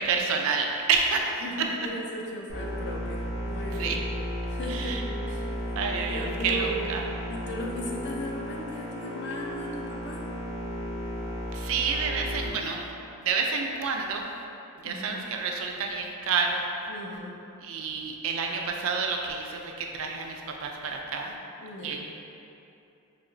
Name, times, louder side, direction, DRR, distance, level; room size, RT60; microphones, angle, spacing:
voice 1, 0.0-1.7 3.7-4.0 4.7-5.0 5.8-7.0 11.5-12.9 13.2-14.3 14.8-16.7 17.6-21.3 21.8-22.0, right 5 dB, 65° right, 2 dB, 0.4 m, -29 dB
voice 2, 1.4-4.0 4.5-6.9 7.3-10.3 14.8-15.2 16.9-17.4 21.6-22.0, equal, 50° left, -1 dB, 0.4 m, -37 dB
sound 1, 2.5-12.5, equal, 90° left, 1.4 m, -34 dB
4.2 x 2.8 x 2.5 m, 2.8 s
head